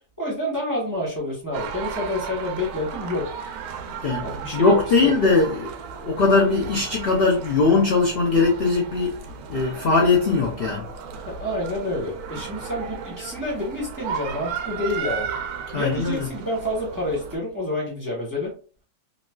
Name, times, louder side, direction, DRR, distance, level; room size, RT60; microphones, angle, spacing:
voice 1, 0.2-3.3 4.2-5.3 11.2-15.3 15.8-18.5, left 1 dB, 15° right, 0.8 m, -28 dB
sound 1, 1.5-17.4, right 6 dB, 75° right, 1.0 m, -35 dB
voice 2, 4.0-5.7 6.0-9.2 9.5-10.9 15.7-16.3, left 3 dB, 60° left, 0.6 m, -20 dB
3.1 x 2.7 x 2.2 m
omnidirectional pair, 1.7 m